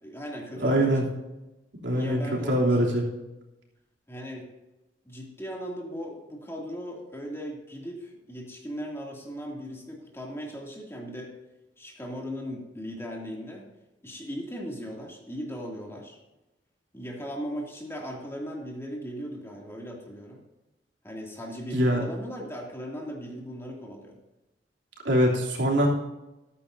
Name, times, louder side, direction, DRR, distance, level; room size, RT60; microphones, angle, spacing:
voice 1, 0.0-1.1 1.9-2.7 4.1-4.5 5.0-11.3 11.8-13.7 14.0-16.2 16.9-20.4 21.0-24.2, equal, 15° left, -1 dB, 2.6 m, -38 dB
voice 2, 0.6-1.1 1.8-3.0 21.7-22.0 25.0-25.9, equal, 80° right, -2 dB, 3.2 m, -23 dB
14.0 x 13.0 x 2.7 m, 1.0 s
head